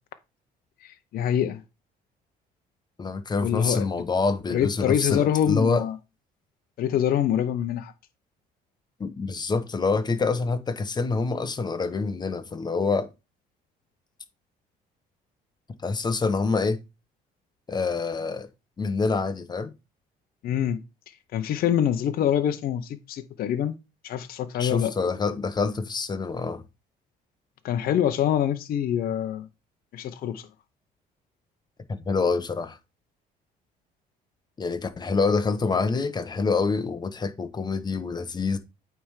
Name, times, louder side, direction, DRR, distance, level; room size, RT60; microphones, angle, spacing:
voice 1, 0.8-1.6 3.4-3.9 4.5-6.0 6.8-7.9 20.4-23.8 24.0-24.9 27.6-29.5 29.9-30.5, left 10 dB, 60° left, 0.7 m, -25 dB
voice 2, 3.0-5.8 9.0-13.1 15.8-16.8 17.7-18.5 18.8-19.7 24.6-26.6 31.9-32.8 34.6-38.6, left 4 dB, 25° left, 1.0 m, -26 dB
8.8 x 3.5 x 4.9 m
cardioid pair, 110°, 17 cm